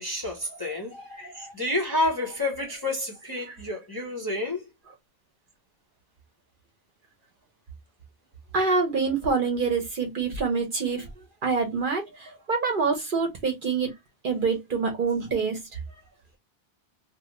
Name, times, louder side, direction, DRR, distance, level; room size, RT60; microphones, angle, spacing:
voice 1, 0.0-4.6, left 2 dB, 25° left, 0.6 m, -29 dB
voice 2, 1.1-1.5 8.5-11.1 11.4-13.9 14.2-15.6, right 4 dB, 50° right, 0.8 m, -26 dB
2.6 x 2.4 x 2.8 m
omnidirectional pair, 1.2 m